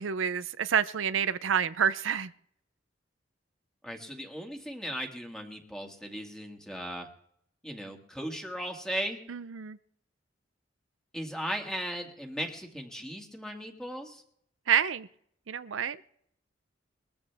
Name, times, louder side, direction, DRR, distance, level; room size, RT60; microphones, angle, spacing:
voice 1, 0.0-2.3 9.3-9.8 14.7-15.1 15.5-16.0, right 7 dB, 90° right, 14 dB, 0.6 m, -28 dB
voice 2, 3.8-7.1 7.6-9.2 11.1-14.2, equal, 5° left, 3 dB, 2.0 m, -37 dB
21.5 x 14.0 x 3.5 m, 0.67 s
head